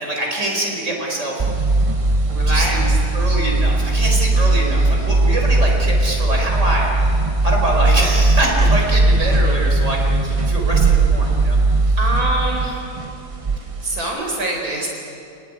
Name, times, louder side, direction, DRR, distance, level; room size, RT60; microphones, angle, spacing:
voice 1, 0.0-1.4 2.5-2.8 3.1-11.6, right 1 dB, 55° right, 0 dB, 5.2 m, -24 dB
sound 1, 1.4-14.0, right 2 dB, 25° right, 1.0 m, -18 dB
voice 2, 2.3-3.0 4.3-5.1 12.0-12.8 13.8-14.9, right 1 dB, 85° right, 0 dB, 4.7 m, -25 dB
28.5 x 19.5 x 9.8 m, 2.6 s
omnidirectional pair, 1.5 m